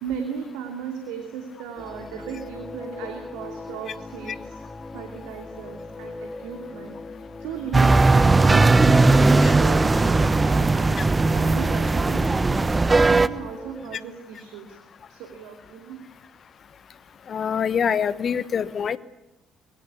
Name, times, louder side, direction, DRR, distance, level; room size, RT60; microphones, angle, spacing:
voice 1, 0.0-4.6 4.9-7.0 7.4-11.0 11.3-12.7 13.1-14.8 15.1-16.0, right 7 dB, 65° right, 4 dB, 2.7 m, -36 dB
sound 1, 1.8-14.0, left 3 dB, 25° left, 2.4 m, -39 dB
sound 2, 7.7-13.3, right 3 dB, 25° right, 1.1 m, -18 dB
voice 2, 17.3-19.0, left 7 dB, 45° left, 16 dB, 1.2 m, -25 dB
24.5 x 22.0 x 8.4 m, 0.96 s
figure-of-eight pair, 45°, 0 cm